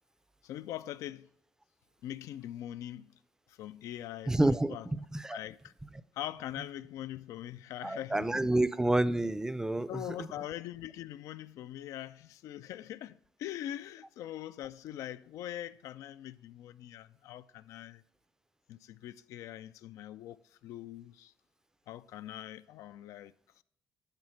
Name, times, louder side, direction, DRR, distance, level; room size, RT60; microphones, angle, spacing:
voice 1, 0.4-1.3 2.0-3.2 3.5-4.9 5.3-5.7 6.1-8.6 9.9-18.0 18.7-21.3 21.9-23.6, left 12 dB, 70° left, 0.3 m, -42 dB
voice 2, 4.3-5.4 7.8-10.0, right 1 dB, 10° right, 0.5 m, -29 dB
9.7 x 4.0 x 4.4 m
hypercardioid pair, 55°, 6 cm